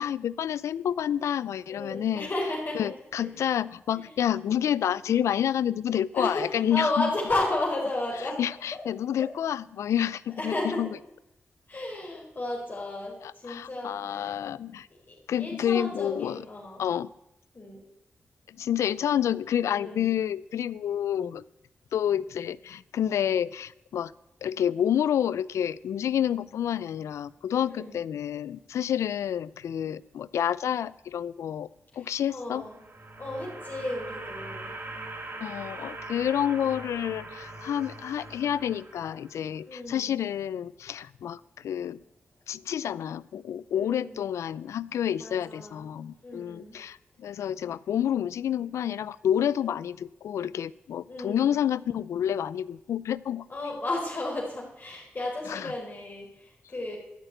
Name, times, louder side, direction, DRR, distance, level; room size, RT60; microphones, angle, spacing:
voice 1, 0.0-2.3 2.8-7.1 8.4-10.9 13.2-14.9 15.3-16.4 16.8-17.1 18.5-21.4 21.9-24.1 24.4-31.7 32.0-32.6 35.4-42.0 42.5-53.5 55.5-55.7, left 10 dB, 90° left, 20 dB, 0.3 m, -29 dB
voice 2, 1.7-2.9 3.4-3.5 3.9-4.1 4.5-4.8 6.1-8.4 8.7-8.8 9.2-9.3 10.4-10.9 11.7-14.3 15.1-16.8 17.5-17.8 19.7-20.1 27.7-28.0 31.9-32.8 33.2-34.7 39.6-40.1 43.7-44.2 45.2-45.9 46.2-46.8 51.1-51.6 53.5-57.0, left 2 dB, 45° left, -3 dB, 4.3 m, -33 dB
sound 1, 32.4-39.6, right 2 dB, 50° right, 2.3 m, -42 dB
13.0 x 5.9 x 9.1 m, 0.86 s
cardioid pair, 55°, 5 cm